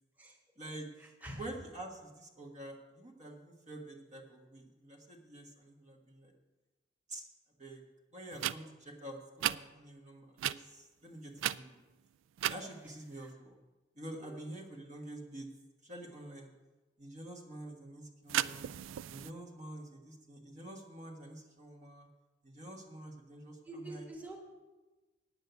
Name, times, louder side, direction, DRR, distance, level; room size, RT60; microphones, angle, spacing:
voice 1, 0.6-0.9 1.4-6.3 7.1-7.3 7.6-7.8 8.1-11.8 12.5-13.6 13.9-15.5 15.8-16.5 17.0-18.7 19.1-22.1 22.4-24.1, right 1 dB, 40° right, 1 dB, 1.5 m, -47 dB
sound 1, 8.3-8.5 9.4-9.6 10.4-10.6 11.4-11.9 12.4-12.6 18.3-19.3, right 12 dB, 80° right, 0.3 m, -34 dB
voice 2, 23.6-24.4, right 1 dB, 10° right, 0 dB, 1.4 m, -46 dB
9.3 x 7.8 x 8.0 m, 1.2 s
head